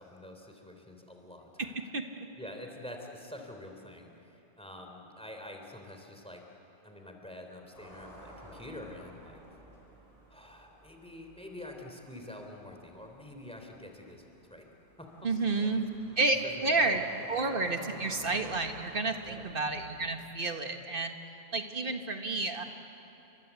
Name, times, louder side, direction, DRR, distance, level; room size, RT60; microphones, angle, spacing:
voice 1, 0.0-1.8 2.4-6.5 6.8-9.4 10.3-14.2 14.5-14.7 15.0-15.3 15.6-15.8 16.3-17.3 19.2-19.5, left 1 dB, 5° left, 3 dB, 3.3 m, -47 dB
sound 1, 7.7-20.1, equal, 30° left, 4.5 m, -54 dB
voice 2, 15.2-15.8 16.2-17.0 17.3-21.2 21.5-22.6, right 3 dB, 50° right, 5 dB, 1.7 m, -30 dB
29.5 x 24.5 x 8.2 m, 3.0 s
omnidirectional pair, 1.2 m